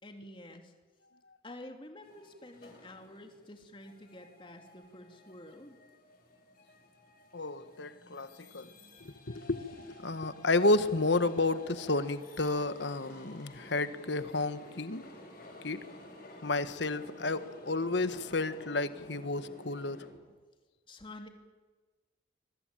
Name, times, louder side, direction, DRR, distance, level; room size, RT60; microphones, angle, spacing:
voice 1, 0.0-0.7 1.4-5.8 20.9-21.3, left 1 dB, 25° left, 5 dB, 2.8 m, -49 dB
sound 1, 2.0-20.1, left 1 dB, 50° left, 7.9 m, -53 dB
voice 2, 7.3-8.7 9.0-15.0 15.6-15.8 16.4-20.0, left 2 dB, 75° left, 12 dB, 1.4 m, -31 dB
26.0 x 22.5 x 9.0 m, 1.3 s
head